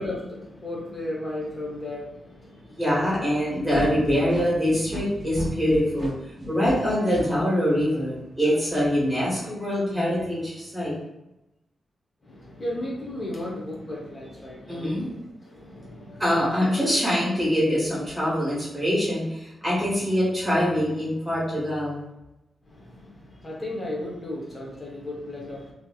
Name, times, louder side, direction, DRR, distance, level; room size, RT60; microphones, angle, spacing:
voice 1, 0.0-2.8 12.2-17.1 22.6-25.7, left 1 dB, 25° left, -4 dB, 0.9 m, -35 dB
voice 2, 2.7-10.9 14.7-15.1 16.2-22.0, equal, 5° right, -7 dB, 1.4 m, -24 dB
sound 1, 3.7-7.2, equal, 20° right, 1.0 m, -33 dB
3.1 x 2.7 x 2.3 m, 0.91 s
wide cardioid pair, 145°, 0 cm